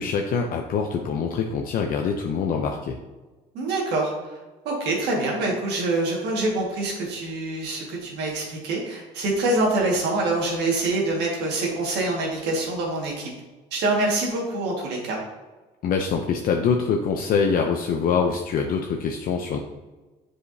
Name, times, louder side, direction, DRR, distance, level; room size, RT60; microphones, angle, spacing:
voice 1, 0.0-3.0 15.8-19.6, left 6 dB, 60° left, 2 dB, 0.6 m, -24 dB
voice 2, 3.5-4.4 4.7-13.3 13.7-15.2, right 2 dB, 80° right, -1 dB, 1.8 m, -25 dB
7.7 x 4.9 x 2.7 m, 1.2 s
cardioid pair, 110°, 17 cm